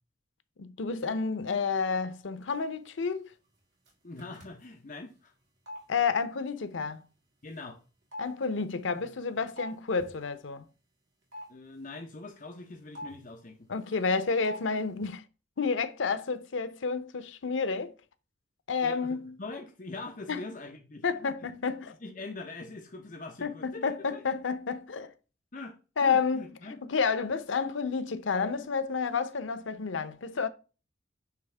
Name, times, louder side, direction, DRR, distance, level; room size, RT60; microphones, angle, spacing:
voice 1, 0.6-3.3 5.9-7.0 8.2-10.6 13.7-15.2 15.6-17.9 18.7-19.4 20.3-20.4 21.0-22.0 23.4-25.1 26.0-26.5 26.8-30.5, left 5 dB, 85° left, 0.6 m, -30 dB
sound 1, 2.5-2.6 3.8-3.9 4.2-4.6 5.7-5.8 7.5-7.6 8.1-9.7 10.0-10.2 11.3-11.5 12.9-13.3 14.4-14.6 14.9-15.1, left 1 dB, 65° right, 3.5 m, -43 dB
voice 2, 4.0-5.3 7.4-7.8 11.5-14.0 18.8-21.5 22.0-24.2 25.5-26.8, left 2 dB, 45° left, 0.9 m, -43 dB
9.3 x 3.5 x 3.3 m
head